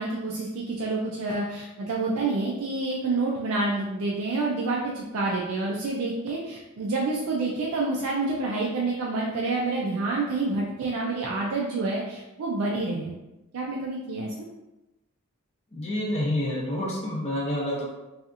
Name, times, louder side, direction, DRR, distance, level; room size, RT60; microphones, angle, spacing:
voice 1, 0.0-13.1 13.5-14.3, right 3 dB, 75° right, -3 dB, 0.4 m, -28 dB
voice 2, 15.7-17.9, left 1 dB, 30° left, -3 dB, 0.5 m, -28 dB
2.7 x 2.4 x 2.4 m, 0.99 s
head